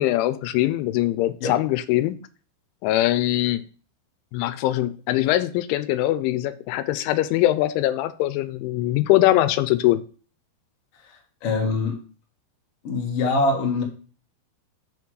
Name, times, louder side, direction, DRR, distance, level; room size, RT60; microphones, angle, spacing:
voice 1, 0.0-2.2 2.8-3.6 4.3-10.0, left 15 dB, 90° left, 3.0 m, -22 dB
voice 2, 11.0-12.0 12.8-13.8, left 3 dB, 60° left, 1.6 m, -24 dB
6.8 x 5.9 x 4.7 m
omnidirectional pair, 5.3 m